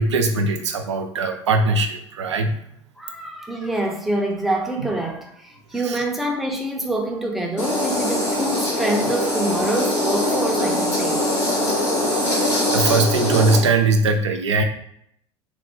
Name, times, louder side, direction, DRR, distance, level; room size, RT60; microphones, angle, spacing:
voice 1, 0.0-2.5 4.8-4.9 5.8-6.0 12.5-14.6, right 3 dB, 75° right, 5 dB, 0.4 m, -20 dB
voice 2, 3.0-11.2, right 1 dB, ahead, 1 dB, 0.5 m, -26 dB
sound 1, 7.6-13.6, left 1 dB, 75° left, 1.0 m, -22 dB
3.2 x 2.1 x 3.0 m, 0.73 s
figure-of-eight pair, 70°, 15 cm